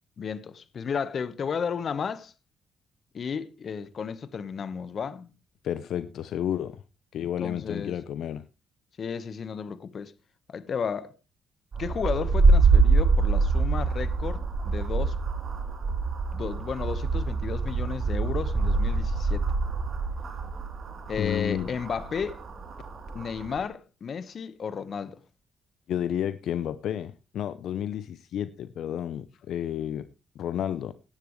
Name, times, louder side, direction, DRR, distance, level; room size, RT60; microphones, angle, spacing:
voice 1, 0.2-2.3 3.1-5.3 7.2-8.0 9.0-10.1 10.5-11.1 11.8-15.2 16.3-19.4 21.1-22.4 23.1-25.2, left 6 dB, 50° left, 1.2 m, -33 dB
voice 2, 5.6-6.8 7.1-8.4 21.2-21.7 25.9-30.1 30.4-30.9, left 10 dB, 75° left, 0.7 m, -31 dB
sound 1, 11.7-23.6, right 3 dB, 50° right, 3.2 m, -25 dB
17.5 x 10.5 x 3.2 m
cardioid pair, 90°, 0 cm